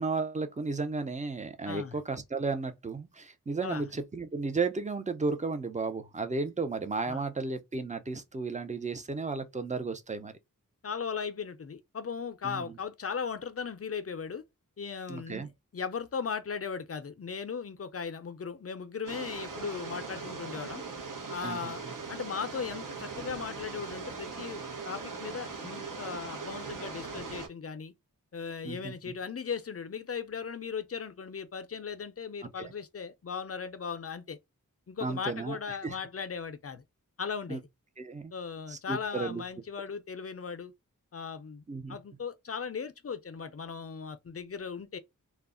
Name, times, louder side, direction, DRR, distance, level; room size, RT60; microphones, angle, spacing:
voice 1, 0.0-10.3 12.4-12.7 15.1-15.5 21.4-21.7 28.6-28.9 32.6-32.7 35.0-35.6 35.8-36.0 37.5-37.6 38.0-38.3 38.7-39.4 41.7-42.0, right 4 dB, 20° right, 0.5 m, -34 dB
voice 2, 1.7-2.0 3.6-3.8 7.1-7.2 10.8-14.4 14.8-20.8 21.3-27.9 28.3-34.4 34.9-36.8 37.2-37.7 38.3-40.7 41.1-45.0, left 6 dB, 45° left, 0.5 m, -37 dB
sound 1, 19.1-27.5, right 4 dB, 65° right, 0.7 m, -40 dB
2.3 x 2.0 x 3.6 m
wide cardioid pair, 45°, 34 cm